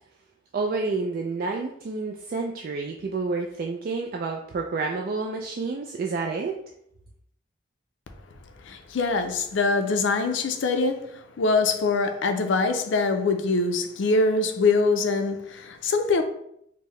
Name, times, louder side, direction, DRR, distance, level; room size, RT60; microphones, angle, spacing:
voice 1, 0.5-6.6, right 4 dB, 50° right, 0.3 m, -29 dB
voice 2, 8.6-16.2, left 3 dB, 75° left, 0.4 m, -24 dB
4.5 x 2.1 x 3.1 m
head